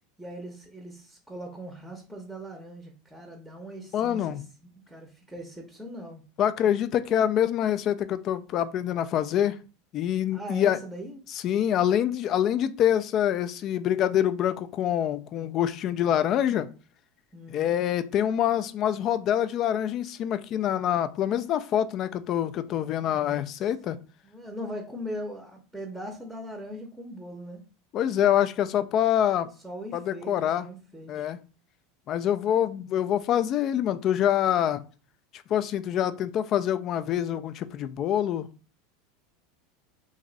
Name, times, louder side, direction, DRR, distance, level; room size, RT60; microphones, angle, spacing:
voice 1, 0.2-4.4 4.9-6.2 10.3-11.2 17.3-17.6 23.0-24.0 24.2-27.6 29.6-31.3, equal, 5° right, 1 dB, 0.7 m, -40 dB
voice 2, 3.9-4.4 6.4-9.5 9.9-10.8 11.3-16.7 17.5-24.0 27.9-29.5 29.9-30.7 31.1-31.4 32.1-34.8 35.5-38.5, left 10 dB, 45° left, 12 dB, 0.3 m, -25 dB
3.0 x 2.6 x 3.9 m, 0.35 s
supercardioid pair, 115°, 0 cm